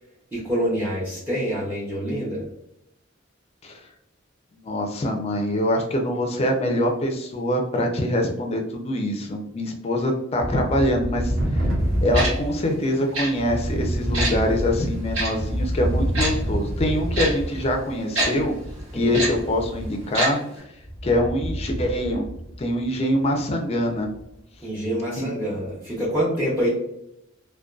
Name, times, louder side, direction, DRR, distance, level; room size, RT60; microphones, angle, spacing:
voice 1, 0.3-2.4 18.9-19.2 24.6-26.7, equal, 10° right, -9 dB, 0.6 m, -26 dB
voice 2, 4.6-11.6 12.0-18.5 18.9-20.4 21.0-22.2 22.6-24.1 25.2-25.3, left 1 dB, 30° left, 2 dB, 0.4 m, -24 dB
sound 1, 10.4-12.7 13.2-20.2 20.8-22.8 23.2-23.3 23.9-24.2, equal, 50° right, 0.6 m, -27 dB
Tick-tock, 12.1-12.3 13.1-13.3 14.1-14.3 15.1-15.3 16.1-16.3 17.1-17.3 18.1-18.3 19.1-19.3 20.1-20.3 20.6-20.7, right 2 dB, 70° right, 1.1 m, -23 dB
2.5 x 2.2 x 2.3 m, 0.80 s
head